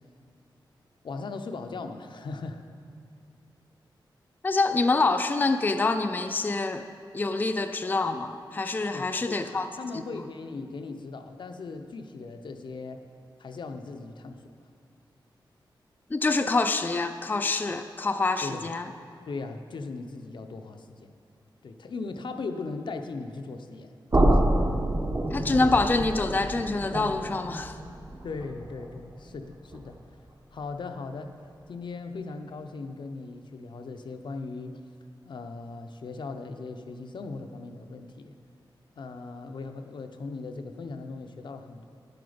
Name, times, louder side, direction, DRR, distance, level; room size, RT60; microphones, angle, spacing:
voice 1, 1.0-2.6 8.9-13.1 13.4-14.5 18.4-18.7 19.3-21.1 21.6-24.7 28.2-30.0 30.5-31.3 31.7-34.8 35.3-38.4 39.0-41.9, left 3 dB, 70° left, 6 dB, 0.6 m, -38 dB
voice 2, 4.4-6.8 7.1-9.7 16.1-18.9 25.3-27.8, left 3 dB, 20° left, 8 dB, 0.4 m, -26 dB
sound 1, 24.1-30.0, right 1 dB, 35° right, 0.9 m, -27 dB
10.5 x 8.0 x 5.0 m, 2.3 s
wide cardioid pair, 100°, 8 cm